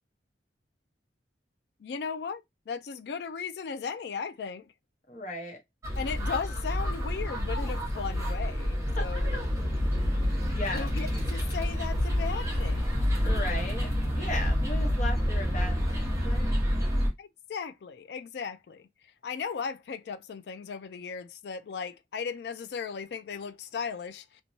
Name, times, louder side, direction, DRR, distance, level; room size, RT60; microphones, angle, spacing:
voice 1, 1.8-4.6 6.0-9.3 10.7-13.0 17.2-18.9 19.2-24.4, left 6 dB, 65° left, 0.3 m, -37 dB
voice 2, 5.1-5.6 9.0-9.1 10.5-10.9 13.2-13.9 14.2-16.5, left 2 dB, 45° left, 0.8 m, -36 dB
sound 1, 5.8-17.1, equal, 15° right, 1.0 m, -28 dB
3.0 x 2.2 x 2.6 m
head